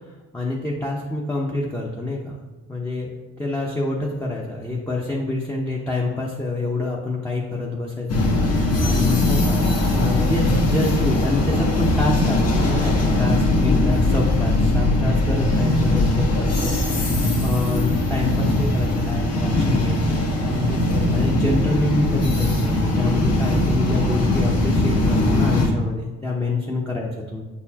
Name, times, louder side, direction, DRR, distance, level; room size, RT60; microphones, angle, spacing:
voice 1, 0.3-2.4 2.7-3.1 3.4-9.6 9.9-20.2 20.4-27.4, left 2 dB, 10° left, -4 dB, 0.8 m, -27 dB
sound 1, 8.1-25.7, left 2 dB, 55° left, 1.3 m, -20 dB
7.8 x 4.2 x 2.9 m, 1.2 s
cardioid pair, 90°, 30 cm